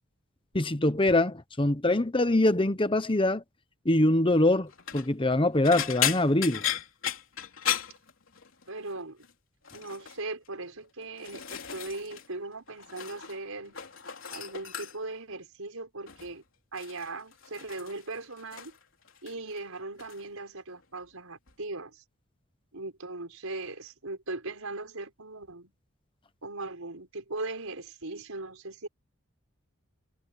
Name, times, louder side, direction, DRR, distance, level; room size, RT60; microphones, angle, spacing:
voice 1, 0.5-3.4 3.8-6.6, left 1 dB, 25° left, 1.1 m, -24 dB
sound 1, 4.7-5.1 5.6-8.7 8.9-9.3 9.6-10.2 10.8-12.3 12.5-13.4 13.6-15.2 16.1-16.3 16.8-18.8 19.1-19.6 20.0-20.2 21.5-21.6, left 10 dB, 70° left, 3.7 m, -35 dB
voice 2, 8.7-9.3 9.7-13.8 14.3-16.4 16.7-18.7 19.2-22.0 22.7-25.7 26.4-28.9, right 2 dB, 85° right, 5.5 m, -39 dB
head